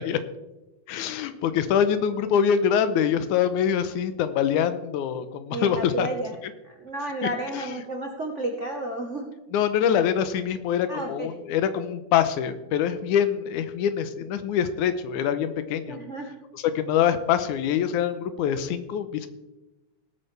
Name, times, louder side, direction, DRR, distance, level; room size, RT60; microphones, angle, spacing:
voice 1, 0.9-6.1 7.6-7.7 9.5-16.0 16.5-19.3, left 8 dB, 90° left, 11 dB, 2.2 m, -24 dB
voice 2, 5.5-6.3 6.6-9.3 10.9-11.3 15.9-16.4, right 1 dB, 85° right, 2 dB, 0.6 m, -32 dB
19.0 x 8.7 x 3.3 m, 1.0 s
omnidirectional pair, 3.4 m